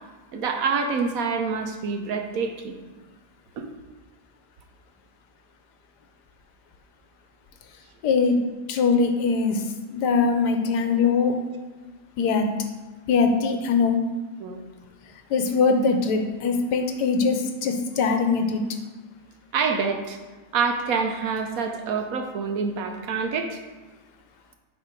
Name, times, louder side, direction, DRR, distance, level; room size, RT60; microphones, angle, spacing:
voice 1, 0.3-2.7 3.6-3.7 14.4-14.6 19.5-20.2 20.5-23.6, right 5 dB, 65° right, 5 dB, 1.0 m, -26 dB
voice 2, 8.0-8.4 8.7-9.6 9.9-11.4 12.2-12.5 13.1-14.0 15.3-18.6, left 4 dB, 90° left, 5 dB, 1.3 m, -22 dB
8.8 x 3.3 x 4.4 m, 1.3 s
omnidirectional pair, 1.7 m